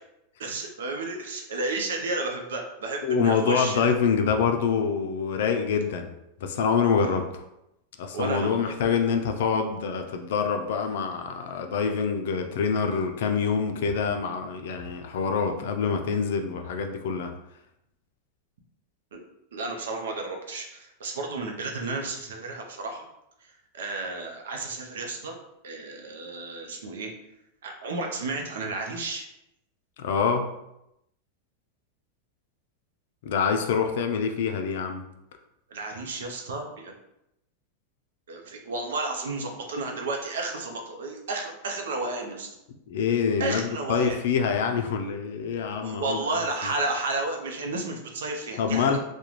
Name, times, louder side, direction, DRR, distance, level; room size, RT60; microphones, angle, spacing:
voice 1, 0.4-3.9 8.1-8.7 19.1-19.2 19.5-23.0 23.7-25.4 25.6-27.1 27.6-29.2 35.7-36.9 38.3-42.5 43.4-44.2 45.8-49.0, right 3 dB, 80° right, 2 dB, 0.5 m, -32 dB
voice 2, 3.0-6.1 6.4-7.4 8.0-17.3 30.0-30.5 33.2-35.0 42.9-46.2 48.6-49.0, left 6 dB, 70° left, 5 dB, 0.4 m, -26 dB
2.4 x 2.1 x 3.0 m, 0.84 s
hypercardioid pair, 110°, 0 cm